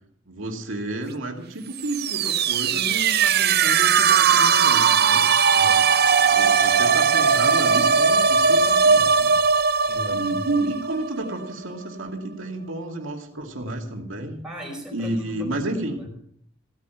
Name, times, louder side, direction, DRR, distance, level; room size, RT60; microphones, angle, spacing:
voice 1, 0.3-5.3 6.2-9.4 10.1-14.4 14.9-16.0, right 2 dB, 70° right, 2 dB, 2.4 m, -31 dB
sound 1, 1.8-11.5, right 6 dB, 50° right, 0.6 m, -19 dB
voice 2, 5.5-6.1 9.8-10.5 14.4-16.1, equal, 5° right, -1 dB, 5.0 m, -38 dB
16.0 x 9.2 x 5.8 m, 0.67 s
head